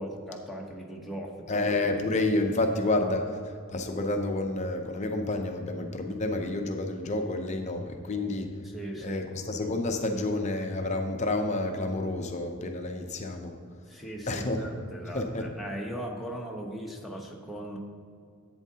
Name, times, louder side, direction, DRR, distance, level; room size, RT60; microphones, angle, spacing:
voice 1, 0.0-1.7 8.6-9.3 13.9-17.8, right 1 dB, ahead, 0 dB, 0.9 m, -39 dB
voice 2, 1.5-3.4 3.7-8.5 9.0-13.6 14.3-14.7 15.1-15.5, left 2 dB, 30° left, 4 dB, 0.6 m, -29 dB
11.0 x 8.3 x 2.8 m, 2.3 s
head